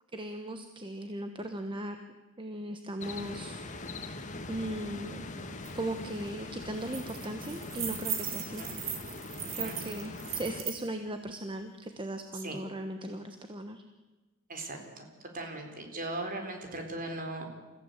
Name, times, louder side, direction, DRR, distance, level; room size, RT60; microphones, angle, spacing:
voice 1, 0.1-2.0 2.4-3.6 4.5-5.3 5.7-8.6 9.6-13.8, right 1 dB, 25° right, 7 dB, 1.2 m, -38 dB
sound 1, 3.0-10.6, left 2 dB, 35° left, 1.8 m, -42 dB
sound 2, 5.6-5.7 6.1-6.3 6.6-10.8, right 9 dB, 70° right, 2.9 m, -38 dB
voice 2, 9.4-9.8 12.3-12.6 14.5-15.0 15.3-17.6, right 2 dB, 45° right, 4 dB, 4.2 m, -39 dB
29.0 x 15.5 x 8.1 m, 1.2 s
head